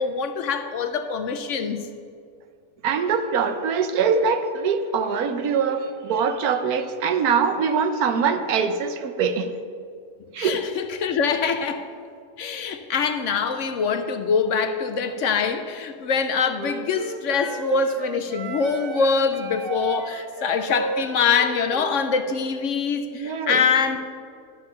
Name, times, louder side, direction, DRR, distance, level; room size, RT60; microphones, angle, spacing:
voice 1, 0.0-1.8 10.4-11.9 12.4-24.0, left 5 dB, 65° left, 8 dB, 0.9 m, -24 dB
voice 2, 2.8-9.5 10.3-10.6 23.1-23.6, right 6 dB, 85° right, 9 dB, 1.3 m, -23 dB
Wind instrument woodwind instrument, 16.5-22.0, right 4 dB, 55° right, 0.7 m, -32 dB
11.5 x 7.1 x 5.7 m, 2.3 s
omnidirectional pair, 1.6 m